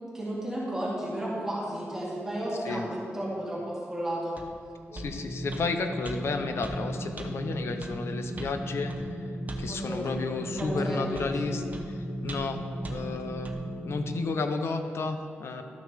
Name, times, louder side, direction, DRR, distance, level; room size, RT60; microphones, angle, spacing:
voice 1, 0.1-4.4 9.7-10.1 10.5-11.6, right 1 dB, 10° right, -8 dB, 2.2 m, -33 dB
sound 1, 4.4-4.5 5.0-5.1 5.5-5.7 6.1-6.2 6.6-6.8 7.2-7.3 7.8-8.0 8.4-8.6 8.9-9.0 9.5-9.7 10.1-10.2 10.6-10.7 11.1-11.4 11.7-11.9 12.3-12.6 12.8-13.0 13.5-13.6, right 2 dB, 35° right, 0.8 m, -41 dB
voice 2, 4.9-9.1 9.6-12.0 12.2-12.6 12.9-13.5 13.8-15.6, left 4 dB, 65° left, 7 dB, 0.6 m, -32 dB
sound 2, 4.9-14.0, right 1 dB, 40° left, 2.3 m, -36 dB
12.5 x 6.3 x 3.4 m, 2.4 s
wide cardioid pair, 125°, 5 cm